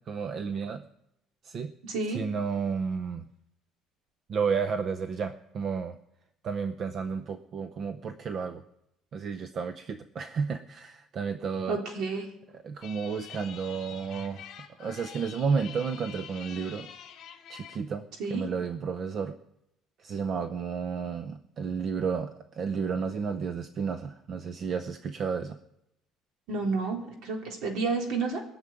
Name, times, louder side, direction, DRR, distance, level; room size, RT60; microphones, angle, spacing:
voice 1, 0.1-0.8 1.4-1.7 2.1-3.2 4.3-6.0 6.4-8.6 9.1-11.8 12.5-14.4 14.8-16.9 17.5-19.4 20.0-25.6, right 5 dB, 40° right, 9 dB, 0.7 m, -32 dB
voice 2, 1.8-2.2 11.7-12.3 18.2-18.4 26.5-28.4, right 4 dB, 65° right, 2 dB, 3.6 m, -30 dB
sound 1, 12.8-17.8, left 9 dB, 50° left, 2.6 m, -46 dB
21.0 x 7.2 x 9.0 m, 0.83 s
cardioid pair, 160°, 0 cm